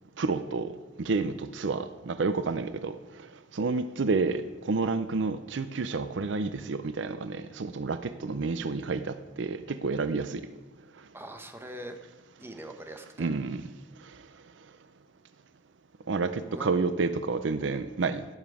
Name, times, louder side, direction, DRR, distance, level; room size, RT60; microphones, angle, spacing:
voice 1, 0.2-0.7 1.0-3.0 3.5-10.4 13.2-13.6 14.1-14.2 16.1-18.3, right 4 dB, 80° right, 12 dB, 0.6 m, -29 dB
voice 2, 11.1-12.0 12.4-13.3 16.4-16.7, right 1 dB, 15° right, 6 dB, 0.9 m, -42 dB
16.0 x 7.2 x 4.9 m, 1.2 s
head